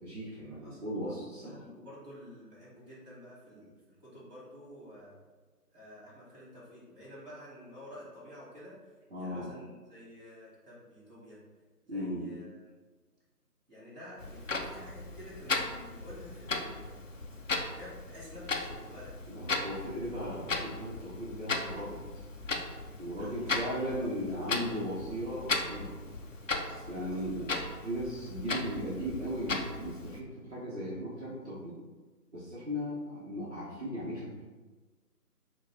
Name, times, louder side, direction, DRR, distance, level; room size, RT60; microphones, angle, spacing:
voice 1, 0.0-1.6 9.1-9.5 11.9-12.4 19.3-22.0 23.0-26.0 26.9-27.5 27.8-31.7 32.3-34.4, equal, 45° right, -9 dB, 1.1 m, -37 dB
voice 2, 0.6-5.2 5.7-8.8 9.2-11.4 11.8-12.6 13.7-17.0 17.5-19.2 19.7-19.9 23.2-23.6 23.8-24.5 26.5-27.5, left 1 dB, 25° right, -11 dB, 1.5 m, -50 dB
Clock, 14.2-30.2, left 3 dB, 55° left, 0.5 m, -37 dB
4.3 x 2.4 x 4.2 m, 1.3 s
figure-of-eight pair, 165°, 47 cm